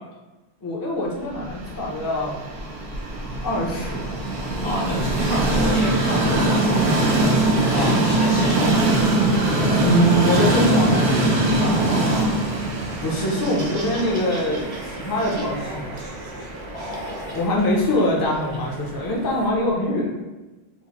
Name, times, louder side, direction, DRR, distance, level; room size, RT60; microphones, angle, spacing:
voice 1, 0.6-2.4 3.4-4.1 4.6-5.1 7.7-8.1 9.8-11.1 13.0-15.9 17.3-20.1, left 1 dB, 30° left, -3 dB, 0.4 m, -23 dB
Train, 1.4-19.5, right 2 dB, 80° right, 0.9 m, -23 dB
voice 2, 4.6-6.8 7.7-9.2 11.6-12.3 16.7-17.4, equal, 75° left, -6 dB, 1.2 m, -31 dB
Laughter, 12.9-19.5, right 1 dB, 50° right, 0.6 m, -39 dB
3.0 x 2.0 x 2.9 m, 1.1 s
omnidirectional pair, 1.1 m